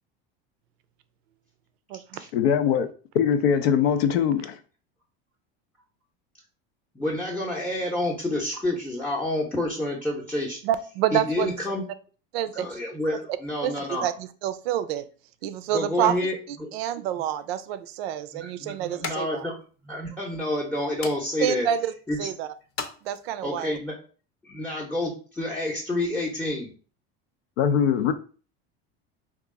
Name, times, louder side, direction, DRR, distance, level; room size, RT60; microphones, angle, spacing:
voice 1, 2.3-2.9 3.1-4.6 27.6-28.1, left 8 dB, 85° left, 0.5 m, -21 dB
voice 2, 6.9-10.6 11.1-11.9 12.5-14.1 15.7-16.7 18.3-19.6 19.8-21.7 22.1-22.3 23.4-24.0 24.4-26.7, left 1 dB, 5° left, 0.6 m, -29 dB
voice 3, 10.6-11.5 12.3-12.7 13.6-15.0 15.4-19.4 21.4-21.9 22.2-22.5 23.0-23.8, right 10 dB, 85° right, 0.5 m, -28 dB
sound 1, 17.3-23.6, left 5 dB, 45° left, 0.7 m, -42 dB
3.0 x 2.4 x 3.5 m
supercardioid pair, 110°, 30 cm